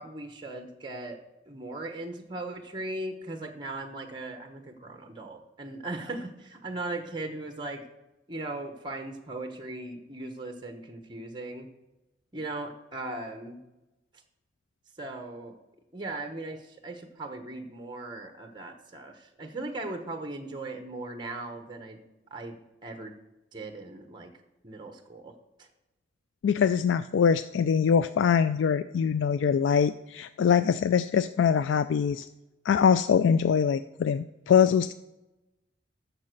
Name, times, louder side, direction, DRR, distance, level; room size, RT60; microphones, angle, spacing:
voice 1, 0.0-7.8 8.3-11.7 12.3-13.6 15.0-15.6 15.9-22.0 22.3-23.1 23.5-24.3 24.6-25.3 25.6-25.7, right 2 dB, 25° right, 5 dB, 1.0 m, -38 dB
voice 2, 26.4-32.3 32.6-34.9, left 7 dB, 85° left, 13 dB, 0.3 m, -23 dB
9.6 x 6.8 x 6.4 m, 0.99 s
head